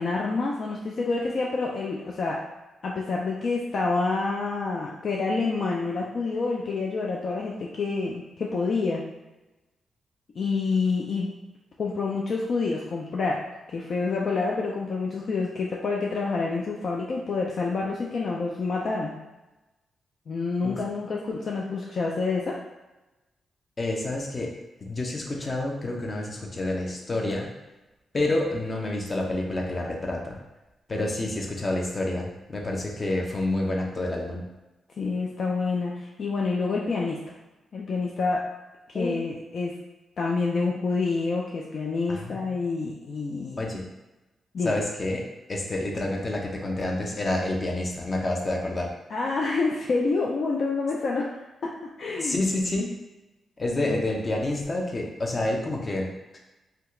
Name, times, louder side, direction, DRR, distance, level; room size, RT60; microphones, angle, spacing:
voice 1, 0.0-2.4 2.8-9.0 10.3-11.3 11.8-13.4 13.7-19.1 20.3-22.6 35.0-37.2 37.7-38.4 38.9-39.7 40.2-43.7 44.5-44.8 49.1-51.7 52.0-52.4 52.8-52.9 53.9-54.0, left 4 dB, 65° left, -2 dB, 0.4 m, -28 dB
voice 2, 23.8-24.5 24.8-27.5 28.1-30.4 30.9-34.4 38.9-39.2 42.1-42.5 43.6-43.9 44.6-45.2 45.5-48.9 52.2-52.9 53.6-56.1, left 2 dB, 35° left, 0 dB, 0.7 m, -28 dB
2.7 x 2.3 x 3.6 m, 1.0 s
supercardioid pair, 55°, 0 cm